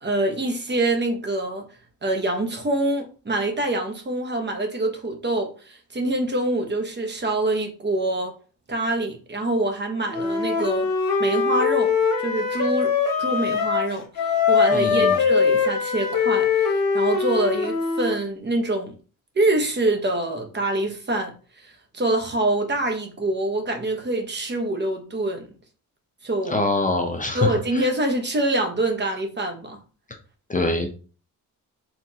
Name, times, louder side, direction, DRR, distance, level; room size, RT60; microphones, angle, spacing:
voice 1, 0.0-1.7 2.0-8.3 8.7-10.9 11.2-12.9 13.2-18.9 19.3-25.5 26.2-26.6 27.3-29.8, right 2 dB, 30° right, 1.0 m, -25 dB
Wind instrument woodwind instrument, 10.1-13.9 14.2-18.2, left 5 dB, 70° left, 1.3 m, -22 dB
voice 2, 14.7-15.2 26.4-27.9 30.5-30.9, left 2 dB, 20° left, 0.7 m, -24 dB
4.6 x 3.5 x 2.8 m
cardioid pair, 110°, 35 cm